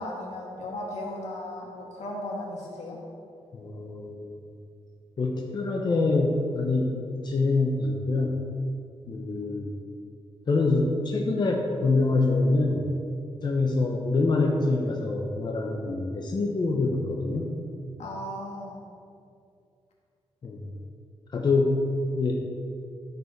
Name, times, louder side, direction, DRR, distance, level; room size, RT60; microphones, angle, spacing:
voice 1, 0.0-3.0 18.0-18.8, left 1 dB, 80° left, -3 dB, 2.2 m, -36 dB
voice 2, 3.5-4.4 5.2-8.4 9.1-9.7 10.5-12.9 13.4-17.6 20.4-20.7 21.3-21.8 22.1-22.3, left 3 dB, 40° left, 0 dB, 0.9 m, -25 dB
13.0 x 5.4 x 4.6 m, 2.5 s
wide cardioid pair, 120°, 11 cm